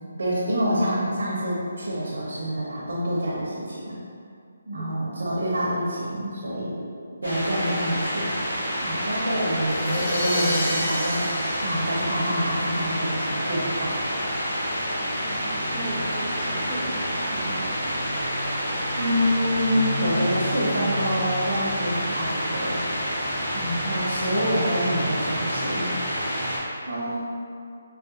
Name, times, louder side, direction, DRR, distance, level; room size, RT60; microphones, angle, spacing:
voice 1, 0.2-4.0 4.7-6.8 7.2-8.3 8.8-11.3 11.6-13.9 19.0-22.8 23.5-26.0 26.9-27.2, equal, 75° right, -7 dB, 0.7 m, -27 dB
sound 1, 7.2-26.6, equal, 80° left, 1.0 m, -28 dB
sound 2, 7.3-24.3, left 1 dB, 50° left, 1.2 m, -48 dB
sound 3, 9.5-12.8, equal, 25° left, 0.9 m, -29 dB
voice 2, 15.2-17.9, right 2 dB, 10° right, -8 dB, 0.6 m, -36 dB
3.9 x 2.1 x 2.8 m, 2.4 s
figure-of-eight pair, 150°, 0 cm